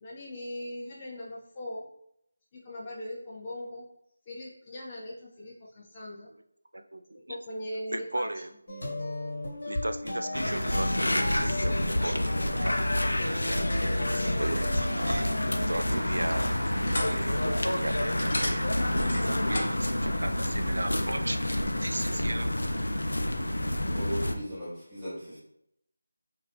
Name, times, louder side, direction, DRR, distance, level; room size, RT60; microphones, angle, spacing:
voice 1, 0.0-1.9 2.5-3.9 4.3-6.3 7.3-8.3, left 1 dB, 25° left, -4 dB, 0.4 m, -39 dB
voice 2, 6.7-7.4 7.9-8.5 9.7-12.8 13.2-16.8 17.0-18.7 19.0-22.7, right 1 dB, 85° right, 8 dB, 0.3 m, -37 dB
sound 1, 8.7-15.7, left 1 dB, 65° left, 1.2 m, -35 dB
sound 2, 10.3-24.4, left 1 dB, 90° left, 0.4 m, -28 dB
sound 3, 11.9-19.8, left 1 dB, 45° left, 0.9 m, -39 dB
voice 3, 23.6-25.4, equal, 15° right, -11 dB, 0.9 m, -38 dB
2.8 x 2.4 x 3.2 m, 0.76 s
figure-of-eight pair, 170°, 0 cm